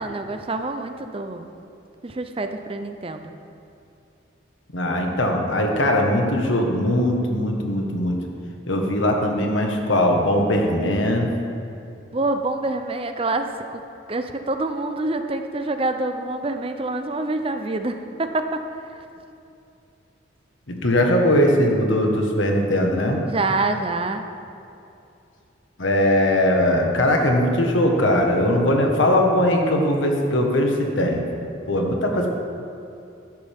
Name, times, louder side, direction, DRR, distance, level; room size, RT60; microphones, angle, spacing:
voice 1, 0.0-1.5 2.0-3.3 12.1-13.8 14.1-18.6 23.2-24.2, right 2 dB, 30° right, 7 dB, 0.6 m, -26 dB
voice 2, 4.7-8.2 8.7-11.3 20.7-23.2 25.8-31.2 31.7-32.3, left 1 dB, 90° left, 1 dB, 1.5 m, -20 dB
13.5 x 11.0 x 3.6 m, 2.6 s
head